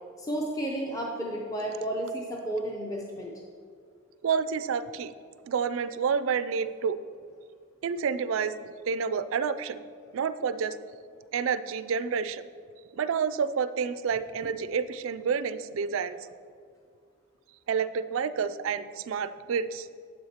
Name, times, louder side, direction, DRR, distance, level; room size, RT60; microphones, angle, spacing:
voice 1, 0.2-3.3, right 1 dB, 15° left, -2 dB, 0.6 m, -32 dB
voice 2, 4.2-5.1 5.5-7.0 7.8-9.8 10.1-10.7 11.3-12.4 12.9-16.2 17.7-19.9, right 6 dB, 85° right, 13 dB, 0.4 m, -29 dB
9.4 x 7.8 x 2.9 m, 2.2 s
head